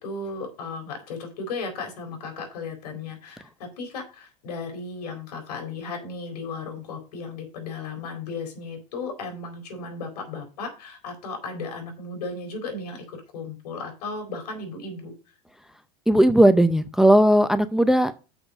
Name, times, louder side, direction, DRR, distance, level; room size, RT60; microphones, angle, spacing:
voice 1, 0.0-15.1, left 3 dB, 75° left, 4 dB, 4.1 m, -35 dB
voice 2, 16.1-18.1, right 1 dB, ahead, 13 dB, 0.5 m, -17 dB
6.7 x 5.9 x 6.4 m, 0.33 s
supercardioid pair, 120°, 20 cm